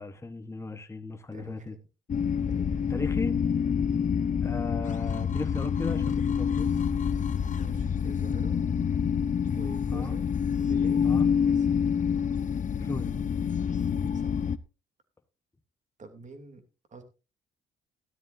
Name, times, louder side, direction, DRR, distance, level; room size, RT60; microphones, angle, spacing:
voice 1, 0.0-1.7 2.9-3.4 4.4-6.7 9.9-10.1 11.0-11.3 12.8-13.2, left 3 dB, 15° left, 1.2 m, -36 dB
voice 2, 1.3-1.8 2.5-2.8 7.5-8.6 9.5-10.3 10.6-11.0 11.4-11.7 14.1-14.5 16.0-16.6 16.9-17.0, right 3 dB, 40° right, 2.9 m, -47 dB
sound 1, 2.1-14.6, left 7 dB, 40° left, 0.7 m, -27 dB
14.5 x 12.5 x 2.7 m
cardioid pair, 90°, 20 cm